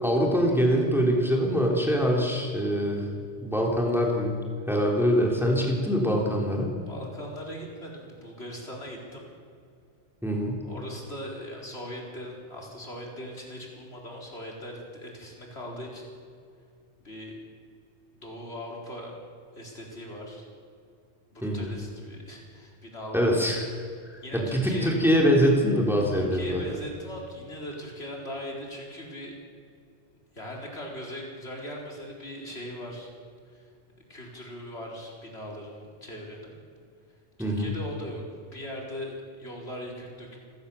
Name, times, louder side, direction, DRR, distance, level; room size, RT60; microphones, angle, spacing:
voice 1, 0.0-3.1 3.4-4.3 4.7-6.7 10.2-10.6 21.4-21.7 23.1-23.7 24.3-26.6 37.4-37.7, equal, ahead, -1 dB, 3.5 m, -24 dB
voice 2, 6.8-9.3 10.6-16.0 17.0-17.4 18.1-19.1 19.5-20.5 21.3-23.4 24.2-25.0 26.1-29.3 30.3-33.1 33.5-33.6 34.1-36.6 37.4-40.4, equal, 70° left, -1 dB, 4.7 m, -40 dB
29.0 x 15.5 x 7.1 m, 2.3 s
omnidirectional pair, 1.1 m